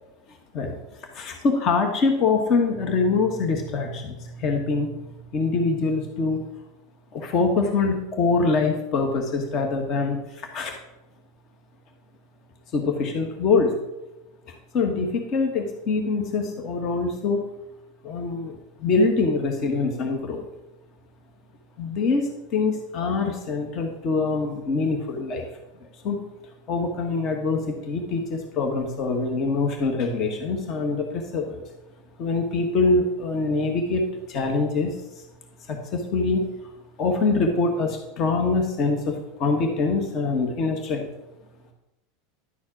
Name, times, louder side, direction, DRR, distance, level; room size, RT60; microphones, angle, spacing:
voice 1, 1.1-4.9 5.3-6.4 7.1-10.7 12.7-13.7 14.7-17.4 18.0-20.5 21.8-25.5 26.0-26.2 26.7-31.6 32.2-35.0 35.7-36.5 37.0-41.1, left 3 dB, 45° left, 4 dB, 1.4 m, -24 dB
11.0 x 4.3 x 5.9 m, 0.96 s
hypercardioid pair, 110°, 0 cm